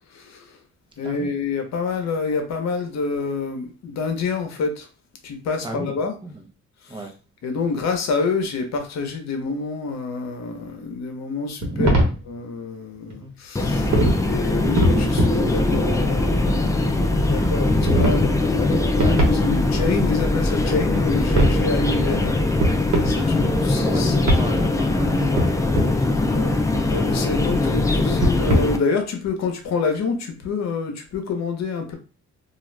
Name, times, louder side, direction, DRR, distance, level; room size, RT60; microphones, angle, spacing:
voice 1, 0.1-0.5 1.0-4.9 5.2-6.2 6.9-7.1 7.4-11.9 12.2-13.9 14.2-16.9 17.2-22.7 23.0-24.2 26.3-26.6 26.9-32.0, left 4 dB, 60° left, 0.9 m, -27 dB
voice 2, 1.0-1.3 5.6-5.9 6.2-6.5 6.9-7.1 11.6-12.2 13.2-13.3 14.6-14.9 19.0-19.2 23.1-26.6, right 1 dB, 15° right, 0.8 m, -31 dB
sound 1, 11.6-12.2 13.1-13.2 13.6-14.2 14.5-15.4 15.7-16.7 17.3-18.2 18.5-19.8 20.0-20.1 20.4-21.6 22.2-22.3 22.6-23.2 23.5-23.8 24.3-24.4 25.0-25.9 26.6-27.7 28.0-28.6, right 1 dB, 65° right, 1.0 m, -22 dB
sound 2, 13.6-28.8, left 2 dB, 10° left, 0.4 m, -21 dB
2.4 x 2.3 x 3.2 m
cardioid pair, 90°, 30 cm